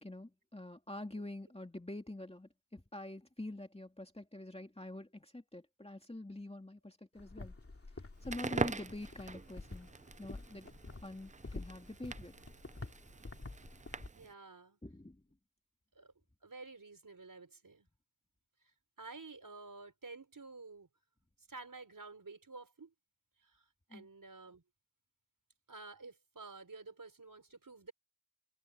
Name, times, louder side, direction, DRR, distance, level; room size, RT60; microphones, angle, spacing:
voice 1, 0.0-7.5 8.2-9.9 10.2-10.7 11.0-12.3 14.8-15.2 23.9-24.1, left 1 dB, 15° left, 2.4 m, -46 dB
sound 1, 7.2-14.1, left 3 dB, 35° left, 2.8 m, -49 dB
Crackle, 8.2-14.3, right 4 dB, 20° right, 0.3 m, -43 dB
voice 2, 14.1-14.8 16.0-16.1 16.4-17.9 19.0-20.9 21.5-22.9 23.4-23.6 23.9-24.6 25.7-27.9, right 3 dB, 50° right, 5.2 m, -51 dB
wide cardioid pair, 80°, 41 cm